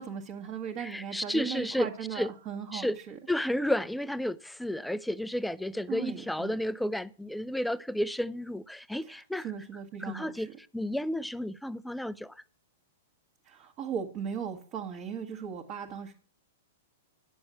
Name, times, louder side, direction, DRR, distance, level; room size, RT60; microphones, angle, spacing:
voice 1, 0.0-3.2 5.9-6.6 9.0-10.5 13.4-16.1, right 7 dB, 40° right, 1.4 m, -38 dB
voice 2, 0.8-1.9 2.2-2.3 2.7-3.0 3.3-9.5 10.0-12.3, left 1 dB, 5° left, 0.4 m, -32 dB
9.9 x 7.0 x 6.3 m
hypercardioid pair, 110°, 0 cm